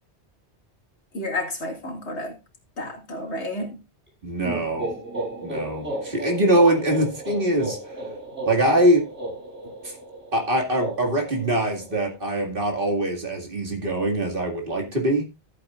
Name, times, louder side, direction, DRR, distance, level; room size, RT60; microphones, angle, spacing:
voice 1, 1.1-2.4 2.8-3.8, left 1 dB, 80° left, 2.6 m, -31 dB
voice 2, 4.2-4.9 5.4-7.8 8.4-9.0 9.8-10.0 10.3-15.2, right 1 dB, 50° right, 2.3 m, -23 dB
sound 1, 4.4-12.1, right 2 dB, 10° right, 7.0 m, -34 dB
14.0 x 8.3 x 2.4 m
omnidirectional pair, 1.1 m